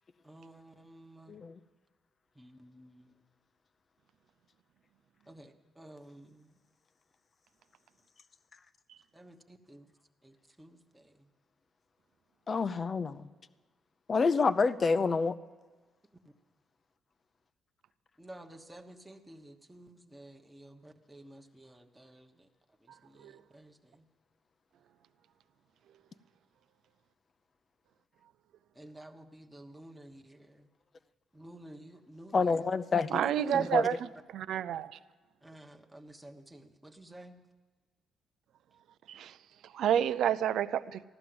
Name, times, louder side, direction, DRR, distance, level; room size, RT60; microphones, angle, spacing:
voice 1, 0.2-1.4 2.3-3.2 5.3-6.5 9.1-9.9 10.2-11.3 18.2-22.5 22.8-24.1 28.7-30.7 31.3-32.6 33.2-34.0 34.5-34.6 35.4-37.4 39.9-40.0, right 1 dB, 5° right, 2 dB, 1.1 m, -51 dB
voice 2, 1.3-1.6 12.5-13.3 14.1-15.3 32.3-33.2 33.5-33.9, left 4 dB, 40° left, 14 dB, 0.6 m, -28 dB
voice 3, 33.1-34.0 34.3-35.0 39.1-39.4 39.7-41.0, right 10 dB, 75° right, 15 dB, 0.5 m, -29 dB
15.0 x 12.0 x 7.8 m, 1.3 s
cardioid pair, 90°, 0 cm